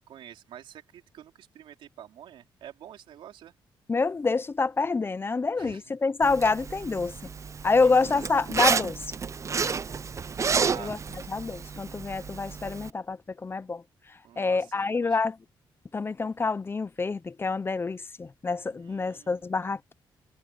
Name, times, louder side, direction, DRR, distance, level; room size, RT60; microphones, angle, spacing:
voice 1, 0.0-3.5 5.6-5.8 7.7-8.2 10.6-11.0 14.2-15.2 18.7-19.6, right 11 dB, 85° right, 3.7 m, -47 dB
voice 2, 3.9-7.1 7.6-9.1 10.8-11.0 11.3-13.8 14.4-15.4 15.9-19.9, left 4 dB, 25° left, 0.6 m, -27 dB
Zipper (clothing), 6.2-12.9, right 5 dB, 35° right, 0.6 m, -31 dB
cardioid pair, 95°, 9 cm